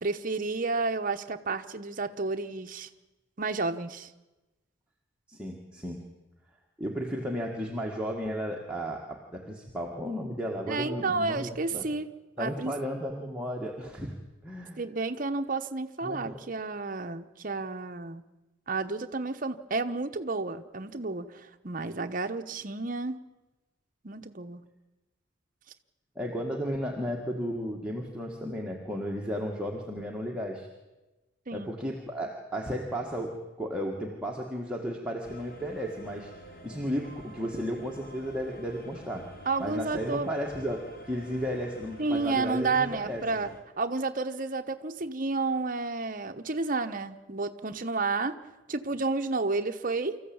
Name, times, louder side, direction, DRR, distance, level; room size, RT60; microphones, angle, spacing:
voice 1, 0.0-2.9 3.4-4.1 10.7-12.1 12.4-12.7 14.8-18.2 18.7-23.2 24.0-24.6 31.5-31.7 39.5-40.3 42.0-43.5 43.8-48.4 48.7-50.2, right 3 dB, 45° right, 8 dB, 1.0 m, -31 dB
voice 2, 5.3-6.0 6.8-11.9 12.4-14.2 14.4-14.8 16.0-16.4 26.1-30.7 31.5-36.3 36.6-39.3 39.6-43.2, equal, 5° right, -1 dB, 1.8 m, -34 dB
sound 1, 35.2-43.6, equal, 50° left, 3.0 m, -48 dB
25.5 x 14.5 x 8.7 m, 1.1 s
head